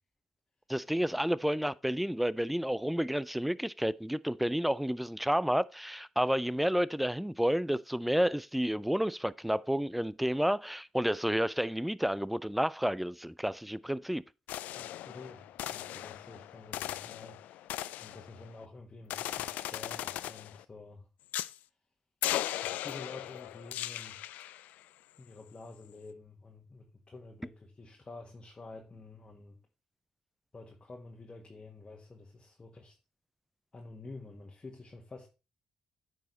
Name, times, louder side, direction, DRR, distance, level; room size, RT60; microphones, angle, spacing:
voice 1, 0.7-14.2, equal, 5° right, 0.4 m, -30 dB
sound 1, 14.5-18.7 19.1-20.6 21.3-21.6 22.2-24.7, left 14 dB, 85° left, 0.3 m, -38 dB
voice 2, 14.7-21.1 22.6-24.2 25.2-29.6 30.5-32.9 33.7-35.3, left 3 dB, 35° left, 1.6 m, -49 dB
9.0 x 4.8 x 4.1 m
supercardioid pair, 55°, 3 cm